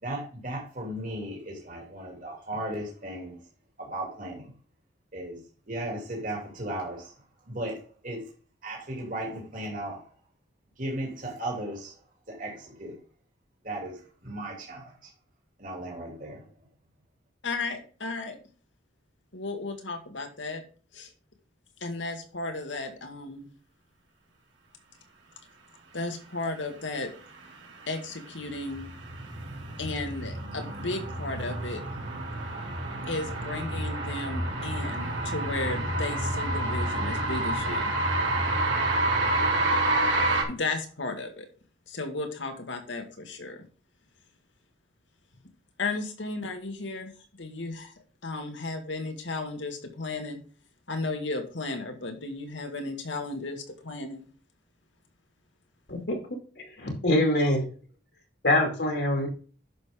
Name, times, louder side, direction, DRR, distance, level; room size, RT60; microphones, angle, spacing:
voice 1, 0.0-3.4 3.8-4.5 5.1-5.4 5.7-7.1 7.5-8.2 8.6-10.0 10.8-11.9 12.3-13.0 13.6-15.1 15.6-16.4, right 1 dB, 45° right, -1 dB, 2.8 m, -36 dB
voice 2, 17.4-18.4 19.3-20.6 20.9-21.1 21.8-23.5 25.9-27.1 27.9-28.9 29.8-31.8 33.1-37.9 40.5-41.5 41.9-43.6 45.8-47.1 47.4-47.9 48.2-50.4 50.9-54.3, left 3 dB, 75° left, 5 dB, 2.0 m, -34 dB
sound 1, 27.6-40.4, right 2 dB, 80° right, 3.0 m, -29 dB
voice 3, 56.6-57.7 58.4-59.3, left 1 dB, 60° left, 2 dB, 2.5 m, -24 dB
10.5 x 6.6 x 3.7 m, 0.40 s
head